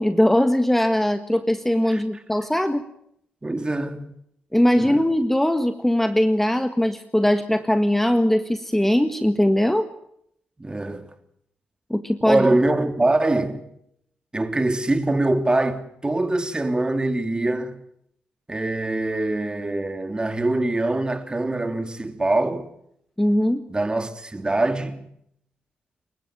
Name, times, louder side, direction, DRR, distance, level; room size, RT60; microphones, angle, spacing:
voice 1, 0.0-2.8 4.5-9.9 11.9-12.4 23.2-23.6, left 1 dB, 5° left, 1.6 m, -20 dB
voice 2, 3.4-4.1 4.8-5.0 10.6-11.1 12.2-13.6 14.3-17.8 18.5-22.7 23.7-25.0, right 2 dB, 20° right, 2.9 m, -23 dB
27.0 x 15.0 x 7.5 m
supercardioid pair, 50°, 4 cm